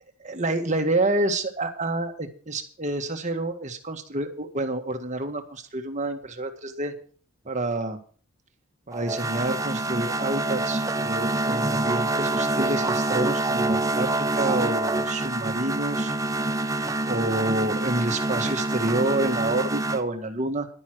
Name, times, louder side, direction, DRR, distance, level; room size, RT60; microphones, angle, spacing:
voice 1, 0.2-6.9 7.5-8.0 8.9-16.1 17.0-20.7, right 2 dB, 35° right, 6 dB, 1.8 m, -28 dB
sound 1, 8.9-20.0, right 2 dB, 15° right, 0.7 m, -26 dB
11.5 x 9.7 x 6.3 m, 0.42 s
head